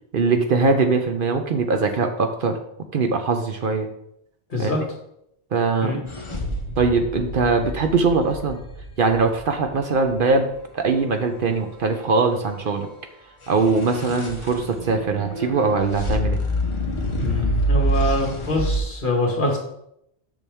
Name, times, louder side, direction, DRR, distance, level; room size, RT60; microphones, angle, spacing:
voice 1, 0.1-2.6 2.9-3.9 4.6-4.7 5.5-6.0 6.8-8.6 9.0-12.9 13.5-16.4, right 4 dB, 60° right, 6 dB, 0.8 m, -21 dB
sound 1, 6.1-10.2 13.5-18.8, equal, 30° left, 0.8 m, -27 dB
voice 2, 17.2-19.6, left 2 dB, 50° left, 0 dB, 2.0 m, -24 dB
7.1 x 5.9 x 3.5 m, 0.76 s
omnidirectional pair, 1.1 m